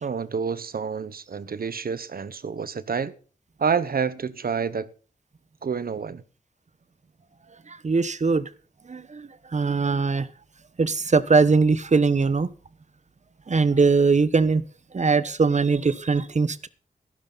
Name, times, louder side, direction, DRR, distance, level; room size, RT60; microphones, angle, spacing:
voice 1, 0.0-3.1 3.6-4.9 5.6-6.2, right 6 dB, 85° right, 1.1 m, -28 dB
voice 2, 7.7-8.5 8.9-10.3 10.8-12.5 13.5-14.6 14.9-16.7, right 4 dB, 55° right, 1.1 m, -21 dB
15.0 x 12.5 x 4.0 m
wide cardioid pair, 95°, 15 cm